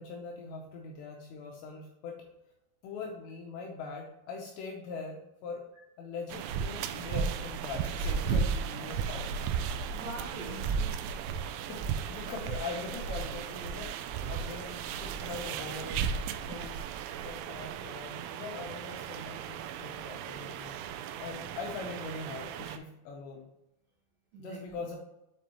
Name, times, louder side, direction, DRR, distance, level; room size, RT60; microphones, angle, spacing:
voice 1, 0.0-2.2 2.8-5.6 6.0-9.5 11.6-11.8 12.1-20.8 21.2-23.5 24.4-25.0, left 4 dB, 80° left, 0 dB, 2.6 m, -42 dB
sound 1, 6.3-22.8, right 6 dB, 85° right, 2.8 m, -35 dB
voice 2, 9.9-11.1 14.2-14.6 24.3-25.0, right 1 dB, 65° right, -5 dB, 2.3 m, -44 dB
7.5 x 5.1 x 2.9 m, 0.91 s
omnidirectional pair, 5.7 m